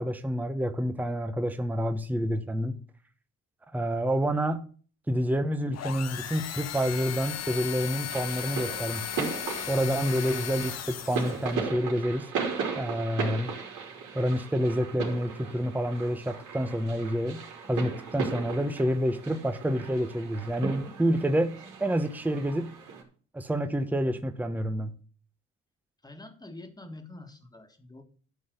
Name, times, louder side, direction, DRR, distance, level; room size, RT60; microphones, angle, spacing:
voice 1, 0.0-2.7 3.7-4.6 5.1-9.3 9.7-12.3 12.8-13.5 14.1-22.7 23.3-24.9, equal, 5° right, 0.8 m, -28 dB
sound 1, 5.7-11.5, left 10 dB, 60° left, 0.7 m, -36 dB
sound 2, 8.1-23.0, right 5 dB, 80° right, 3.3 m, -37 dB
voice 2, 26.0-28.0, left 2 dB, 15° left, 1.7 m, -46 dB
11.5 x 4.0 x 7.8 m
cardioid pair, 90°, 30 cm